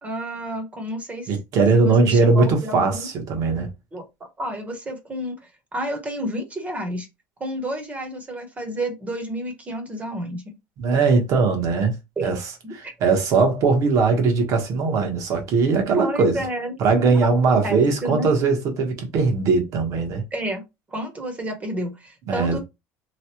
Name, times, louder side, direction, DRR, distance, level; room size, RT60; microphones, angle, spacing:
voice 1, 0.0-1.3 1.7-3.1 3.9-4.0 4.4-5.4 5.7-7.1 7.4-10.4 12.2-12.3 12.6-12.9 16.0-16.7 17.1-18.3 20.3-20.6 20.9-22.6, right 1 dB, 20° right, 1.0 m, -30 dB
voice 2, 1.3-3.7 10.8-11.9 12.2-12.4 12.7-16.4 16.8-20.2 22.3-22.6, right 4 dB, 55° right, 1.2 m, -20 dB
3.1 x 2.3 x 2.9 m
cardioid pair, 120°, 6 cm